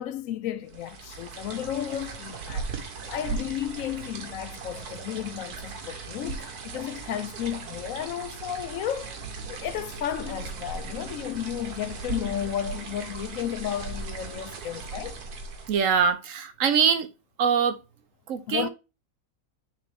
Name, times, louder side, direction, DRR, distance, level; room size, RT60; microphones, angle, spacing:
voice 1, 0.0-9.2 9.5-15.2 18.5-18.7, left 10 dB, 70° left, 0.9 m, -33 dB
sound 1, 0.7-16.1, right 4 dB, 85° right, 1.6 m, -38 dB
voice 2, 15.7-17.1 17.4-17.8 18.3-18.7, right 6 dB, 65° right, 1.0 m, -23 dB
8.8 x 3.7 x 3.4 m
omnidirectional pair, 1.6 m